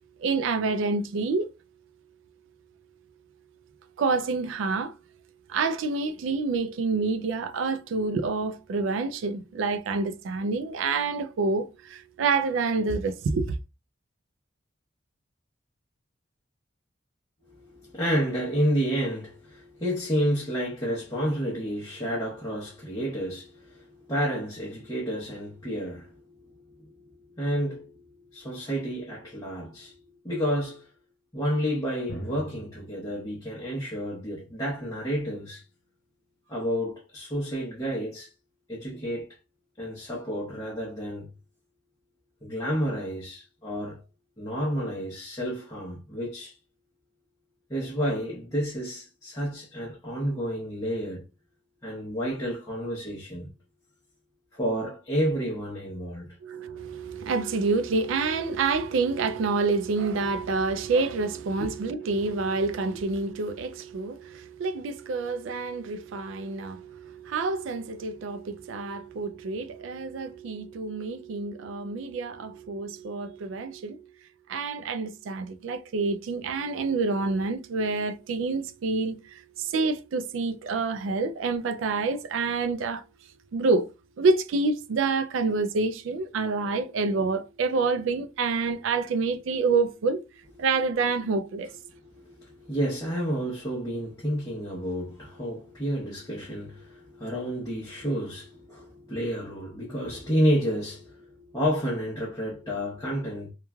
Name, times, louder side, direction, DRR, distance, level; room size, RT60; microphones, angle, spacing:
voice 1, 0.2-1.5 4.0-4.9 5.5-13.6 56.4-74.1 74.5-83.0 83.5-83.9 84.2-90.2 90.6-91.7, right 4 dB, 85° right, 0.4 m, -27 dB
voice 2, 17.5-26.2 26.5-27.1 27.4-28.0 28.3-30.0 30.2-30.9 31.3-35.6 36.5-38.3 38.7-39.3 39.8-41.3 42.4-44.0 44.4-46.5 47.7-51.2 51.8-53.5 54.5-56.3 91.9-103.5, equal, 20° left, 0.7 m, -30 dB
Drum, 32.1-35.6, equal, 70° left, 0.7 m, -44 dB
3.0 x 2.3 x 2.2 m
head